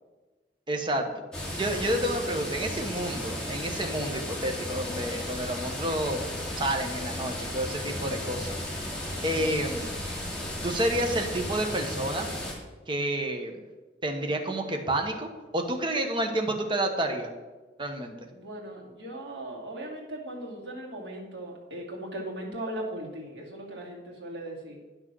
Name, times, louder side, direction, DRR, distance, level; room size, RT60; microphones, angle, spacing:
voice 1, 0.7-1.2 1.6-6.2 6.6-8.6 9.2-10.0 10.6-12.3 12.9-13.6 14.0-15.3 15.5-17.3 17.8-18.1, right 1 dB, 30° right, 4 dB, 1.1 m, -29 dB
sound 1, 1.3-12.5, left 1 dB, 5° left, 2.5 m, -34 dB
voice 2, 18.3-24.8, right 1 dB, 80° right, -2 dB, 2.8 m, -38 dB
9.7 x 6.3 x 6.2 m, 1.2 s
head